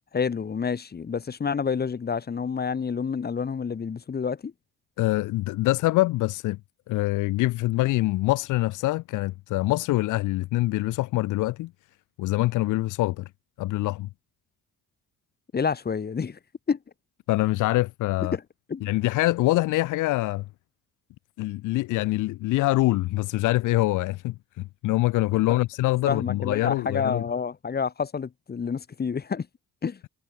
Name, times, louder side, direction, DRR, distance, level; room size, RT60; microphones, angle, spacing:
voice 1, 0.1-4.5 15.5-16.4 16.7-16.8 18.3-18.4 18.7-18.9 25.5-25.6 26.1-29.5 29.8-30.0, left 6 dB, 35° left, 1.2 m, -28 dB
voice 2, 5.0-6.6 6.9-11.7 12.2-13.3 13.6-14.1 17.3-18.4 18.8-20.5 21.4-27.2, left 18 dB, 85° left, 0.7 m, -24 dB
cardioid pair, 90°, 30 cm